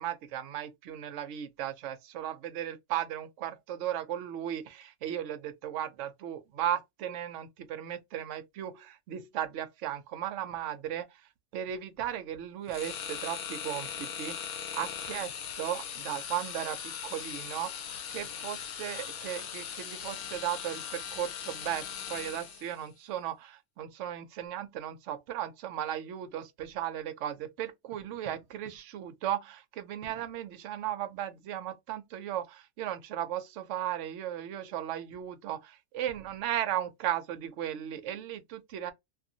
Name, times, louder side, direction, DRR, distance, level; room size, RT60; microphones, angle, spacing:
voice 1, 0.0-11.1 11.5-14.4 14.7-38.9, right 11 dB, 65° right, 0.8 m, -36 dB
sound 1, 12.7-22.8, left 8 dB, 80° left, 1.1 m, -39 dB
2.6 x 2.5 x 2.7 m
omnidirectional pair, 1.5 m